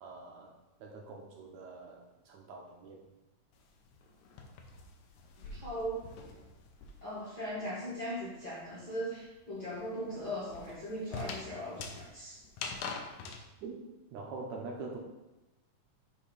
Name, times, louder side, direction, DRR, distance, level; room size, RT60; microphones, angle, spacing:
voice 1, 0.0-0.5 0.8-3.0 13.6-13.7 14.1-15.0, right 3 dB, 75° right, 0 dB, 1.8 m, -44 dB
sound 1, 3.5-7.3 7.6-13.4, left 4 dB, 75° left, 2.0 m, -45 dB
voice 2, 5.4-6.1 7.0-12.4, equal, 50° left, -7 dB, 1.3 m, -39 dB
8.3 x 2.8 x 5.4 m, 1.0 s
omnidirectional pair, 3.6 m